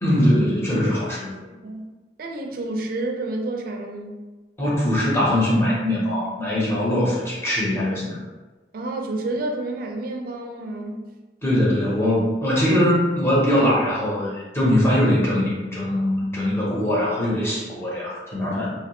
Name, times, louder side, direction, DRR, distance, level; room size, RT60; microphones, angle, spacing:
voice 1, 0.0-1.3 4.6-8.2 11.4-18.7, left 1 dB, 15° left, -7 dB, 0.7 m, -21 dB
voice 2, 2.2-4.1 8.7-11.0, right 2 dB, 55° right, 2 dB, 0.4 m, -29 dB
2.7 x 2.0 x 2.9 m, 1.3 s
head